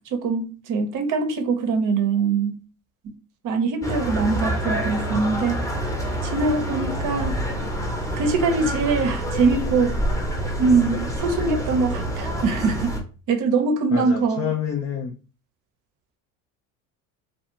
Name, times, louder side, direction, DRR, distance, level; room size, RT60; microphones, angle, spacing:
voice 1, 0.1-2.5 3.4-5.6 6.3-7.3 8.2-9.9 10.6-12.9 13.3-14.5, right 4 dB, 45° right, 0.7 m, -22 dB
sound 1, 3.8-13.0, right 1 dB, 10° left, 0.8 m, -27 dB
voice 2, 13.9-15.1, left 8 dB, 35° left, 0.5 m, -27 dB
2.4 x 2.4 x 2.8 m
hypercardioid pair, 65°, 44 cm